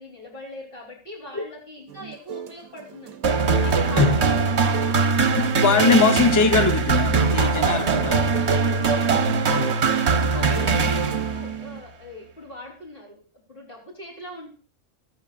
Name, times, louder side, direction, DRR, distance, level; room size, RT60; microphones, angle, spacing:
voice 1, 0.0-4.3 8.1-8.6 9.2-9.5 10.3-13.2 13.5-14.5, left 1 dB, 40° left, 4.3 m, -41 dB
sound 1, 1.9-11.8, right 8 dB, 85° right, 1.2 m, -37 dB
sound 2, 3.2-11.6, right 4 dB, 55° right, 1.3 m, -21 dB
voice 2, 5.4-8.3 9.5-9.8 10.3-10.5, left 4 dB, 15° left, 0.7 m, -21 dB
14.0 x 13.5 x 2.5 m
omnidirectional pair, 1.5 m